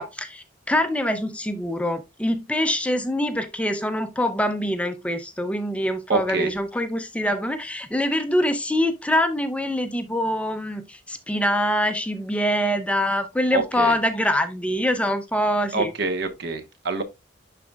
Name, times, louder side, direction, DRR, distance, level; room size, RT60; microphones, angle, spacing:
voice 1, 0.0-15.9, left 1 dB, 5° left, 0.5 m, -24 dB
voice 2, 6.1-6.5 13.5-14.0 15.7-17.0, right 3 dB, 55° right, 1.0 m, -26 dB
11.0 x 4.1 x 2.3 m
head